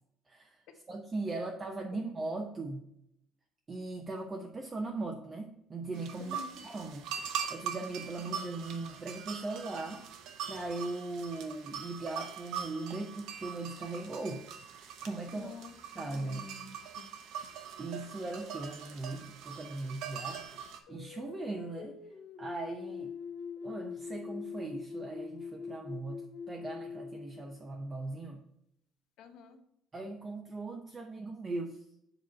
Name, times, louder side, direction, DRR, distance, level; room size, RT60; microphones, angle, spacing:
voice 1, 0.3-0.6 0.9-2.9 3.7-6.4 6.6-10.1 10.5-14.5 14.7-15.5 16.0-16.4 17.8-20.4 20.9-22.0 22.4-23.2 23.6-28.4 29.9-31.8, right 2 dB, 20° right, 2 dB, 0.6 m, -39 dB
sound 1, 5.9-20.8, right 8 dB, 70° right, 0.9 m, -42 dB
voice 2, 6.2-6.6 15.3-17.1 29.2-29.6, left 5 dB, 60° left, 6 dB, 1.0 m, -49 dB
sound 2, 20.9-28.2, left 6 dB, 75° left, 1.5 m, -43 dB
7.4 x 3.0 x 6.1 m, 0.76 s
cardioid pair, 175°, 0 cm